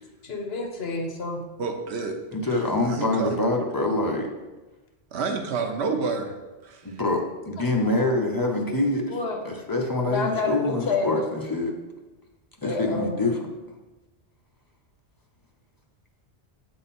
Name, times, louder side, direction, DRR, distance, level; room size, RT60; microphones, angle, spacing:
voice 1, 0.2-1.4 7.8-8.1 9.1-9.4 10.1-11.3 12.6-13.3, left 3 dB, 70° left, 2 dB, 1.2 m, -29 dB
voice 2, 1.6-2.2 2.5-3.4 5.1-6.3 6.6-7.0, right 4 dB, 75° right, 4 dB, 1.0 m, -29 dB
voice 3, 2.3-4.3 6.8-9.2 9.4-11.7 12.6-13.4, left 2 dB, 25° left, 0 dB, 0.6 m, -25 dB
7.9 x 3.8 x 4.2 m, 1.1 s
omnidirectional pair, 1.1 m